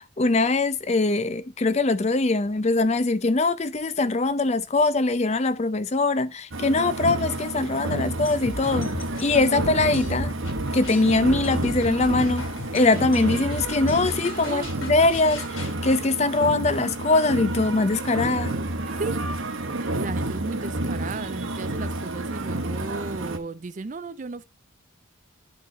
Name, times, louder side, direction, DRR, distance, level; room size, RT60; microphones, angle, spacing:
voice 1, 0.0-8.9 9.2-10.3 10.7-12.5 12.7-18.6, left 2 dB, 30° left, 0.5 m, -22 dB
sound 1, 6.5-23.4, right 1 dB, 75° right, 1.2 m, -30 dB
sound 2, 8.2-15.7, left 1 dB, 80° left, 2.7 m, -37 dB
voice 2, 14.4-14.7 18.9-19.2 19.7-24.4, right 3 dB, 35° right, 0.4 m, -35 dB
11.0 x 4.0 x 4.0 m
head